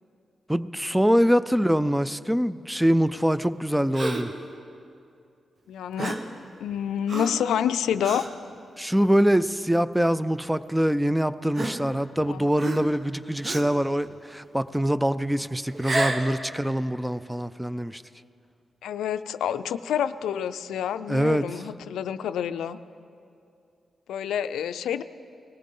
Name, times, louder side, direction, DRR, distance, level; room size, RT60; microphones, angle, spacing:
voice 1, 0.5-4.3 8.8-18.0 21.1-21.6, equal, 5° right, 0.4 m, -24 dB
Gasp, 3.9-4.4 6.0-6.3 7.1-7.5 8.0-8.3 9.0-9.2 10.2-10.3 11.5-12.2 12.6-13.0 13.4-13.8 15.7-16.3, right 2 dB, 55° right, 1.2 m, -30 dB
voice 2, 5.7-6.2 6.6-8.2 12.3-12.5 18.8-22.8 24.1-25.0, left 9 dB, 90° left, 0.3 m, -28 dB
20.0 x 14.5 x 3.8 m
cardioid pair, 55°, 0 cm